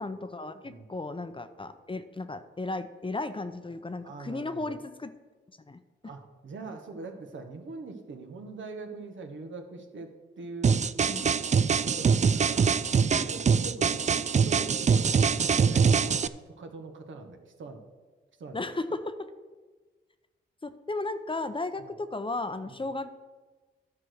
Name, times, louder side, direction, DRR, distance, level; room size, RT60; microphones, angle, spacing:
voice 1, 0.0-5.1 5.7-5.8 11.1-11.2 18.5-19.1 20.6-23.1, left 2 dB, 25° left, 10 dB, 0.7 m, -35 dB
voice 2, 4.0-4.8 6.0-10.8 11.8-12.7 13.1-17.8 18.4-18.7 21.8-21.9 22.7-22.8, right 3 dB, 70° right, 5 dB, 1.3 m, -42 dB
sound 1, 10.6-16.3, right 6 dB, 35° right, 0.4 m, -24 dB
11.0 x 4.7 x 6.4 m, 1.3 s
supercardioid pair, 50°, 21 cm